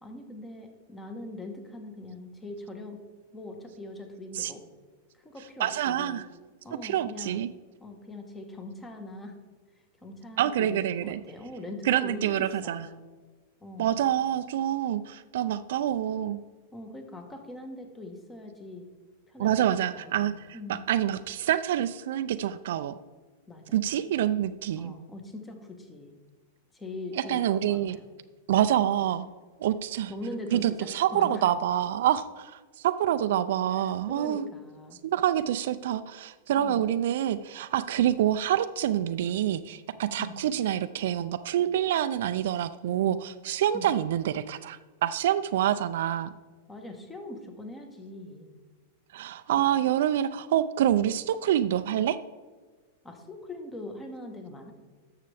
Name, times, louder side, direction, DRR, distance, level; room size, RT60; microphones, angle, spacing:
voice 1, 0.0-3.0 3.3-4.6 5.1-6.2 6.6-7.4 7.8-9.4 10.0-13.0 13.6-14.0 16.7-18.8 19.3-20.8 23.5-23.8 24.8-26.1 26.7-28.0 30.1-31.5 33.7-35.0 36.5-36.9 40.2-40.4 43.7-43.9 46.7-48.5 49.6-49.7 53.0-54.7, left 2 dB, 10° left, 5 dB, 1.2 m, -42 dB
voice 2, 5.6-6.2 6.8-7.5 10.4-11.2 11.9-12.8 13.8-16.4 19.4-20.3 20.7-23.0 23.7-24.9 27.1-28.0 28.5-29.3 29.6-30.1 30.5-32.5 32.8-34.5 35.1-46.3 49.1-52.2, right 11 dB, 70° right, 11 dB, 0.3 m, -26 dB
11.5 x 6.5 x 3.4 m, 1.4 s
supercardioid pair, 135°, 0 cm